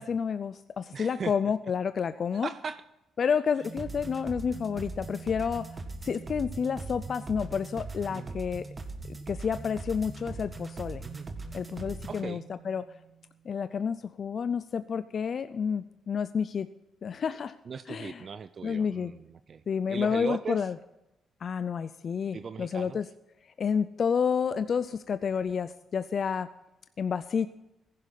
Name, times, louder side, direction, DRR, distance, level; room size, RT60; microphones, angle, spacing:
voice 1, 0.0-2.5 3.2-5.7 6.0-8.7 9.1-11.0 11.5-12.9 13.4-16.7 17.0-17.6 17.9-18.3 18.6-19.1 19.7-20.8 21.4-23.1 23.4-26.5 27.0-27.5, left 6 dB, 55° left, 13 dB, 0.5 m, -30 dB
voice 2, 0.9-1.3 2.4-2.8 8.1-8.4 11.0-11.3 12.1-12.4 17.7-19.6 19.9-20.7 22.3-23.0, right 6 dB, 50° right, 13 dB, 0.5 m, -38 dB
sound 1, 3.6-13.5, right 3 dB, 30° right, 1.8 m, -41 dB
15.0 x 11.0 x 4.0 m, 0.89 s
cardioid pair, 70°, 0 cm